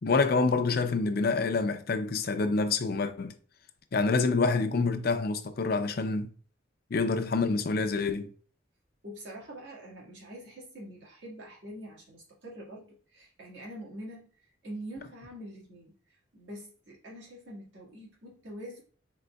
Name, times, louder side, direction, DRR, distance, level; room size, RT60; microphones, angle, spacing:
voice 1, 0.0-3.3 3.9-6.3 6.9-8.3, left 4 dB, 50° left, 0.5 m, -27 dB
voice 2, 9.0-18.8, right 1 dB, 70° right, 1.6 m, -45 dB
4.1 x 3.9 x 2.3 m
head